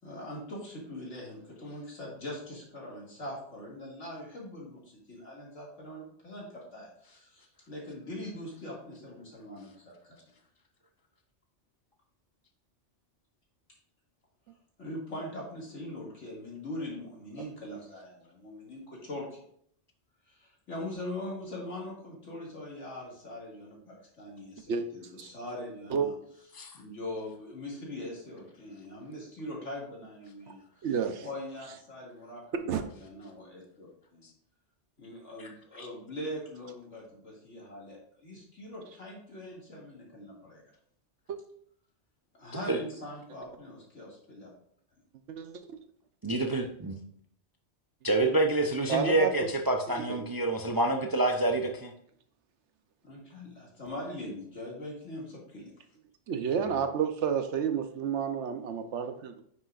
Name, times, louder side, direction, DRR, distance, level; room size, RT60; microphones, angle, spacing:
voice 1, 0.0-10.2 14.8-19.4 20.3-26.1 26.7-30.9 31.2-34.3 35.0-40.6 42.3-44.5 53.1-55.7, left 1 dB, 80° left, -3 dB, 2.6 m, -42 dB
voice 2, 30.8-31.2 32.7-32.8 41.3-41.4 45.3-45.8 48.9-49.5 50.0-50.3 56.3-59.4, right 7 dB, 75° right, 8 dB, 1.0 m, -30 dB
voice 3, 46.2-47.0 48.0-51.9, right 2 dB, 30° right, 3 dB, 0.4 m, -27 dB
9.2 x 6.3 x 2.5 m, 0.65 s
omnidirectional pair, 1.2 m